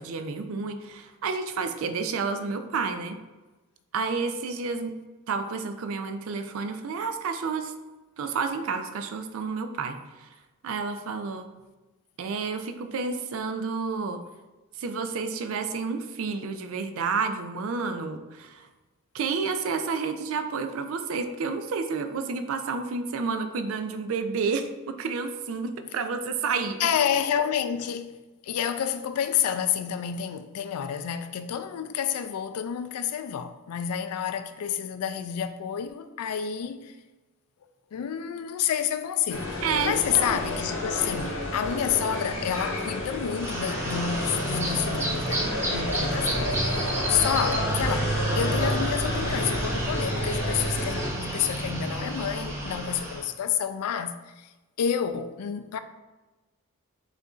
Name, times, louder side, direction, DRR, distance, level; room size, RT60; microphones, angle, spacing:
voice 1, 0.0-3.2 3.9-5.0 5.3-7.7 8.2-10.3 10.6-11.5 12.2-14.2 14.8-18.7 19.1-26.8 39.6-40.4, right 4 dB, 70° right, 0.4 m, -30 dB
voice 2, 26.8-28.2 28.4-37.0 37.9-54.5 54.8-55.8, left 8 dB, 85° left, 0.3 m, -29 dB
sound 1, 39.3-51.1, left 1 dB, 65° left, 0.8 m, -31 dB
sound 2, 43.4-53.2, right 2 dB, 10° right, 0.6 m, -30 dB
6.3 x 2.5 x 2.4 m
head